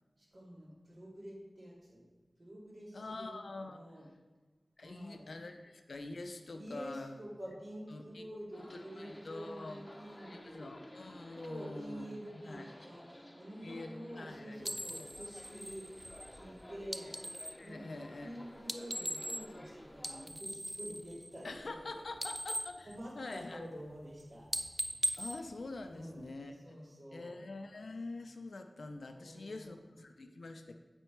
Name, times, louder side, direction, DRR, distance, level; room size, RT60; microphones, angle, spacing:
voice 1, 0.2-2.1 2.4-4.1 4.8-5.3 6.5-10.7 11.3-15.9 16.3-17.1 17.6-22.0 22.8-24.5 25.9-26.4 26.6-27.3 29.1-29.8, equal, 70° right, -6 dB, 2.4 m, -48 dB
voice 2, 2.9-3.8 4.8-7.2 7.9-8.2 8.6-9.8 10.2-12.1 12.4-12.7 13.6-14.7 17.6-18.3 21.4-23.6 25.2-26.8 27.1-30.7, left 2 dB, 85° left, 6 dB, 0.5 m, -45 dB
sound 1, 8.5-20.3, left 1 dB, 20° left, 0.8 m, -54 dB
sound 2, 14.6-17.6 18.6-19.7 19.9-21.8 22.1-23.6 24.0-24.2 24.5-26.3, equal, 20° right, 0.4 m, -40 dB
8.1 x 4.4 x 4.5 m, 1.3 s
wide cardioid pair, 45°, 0 cm